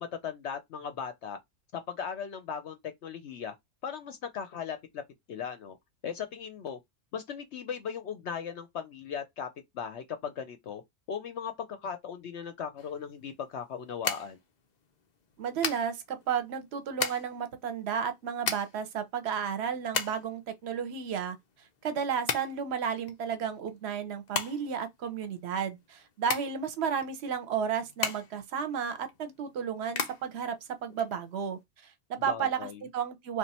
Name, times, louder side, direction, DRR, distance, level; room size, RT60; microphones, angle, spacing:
voice 1, 0.0-1.4 1.7-3.6 3.8-5.0 5.3-5.8 6.0-6.8 7.1-9.5 9.7-10.8 11.1-14.4 32.2-32.8, left 7 dB, 65° left, 0.7 m, -38 dB
sound 1, 12.8-31.6, left 6 dB, 85° left, 0.3 m, -38 dB
voice 2, 15.4-21.4 21.8-30.6 30.8-33.4, right 7 dB, 55° right, 0.9 m, -33 dB
3.5 x 2.5 x 4.1 m
omnidirectional pair, 1.6 m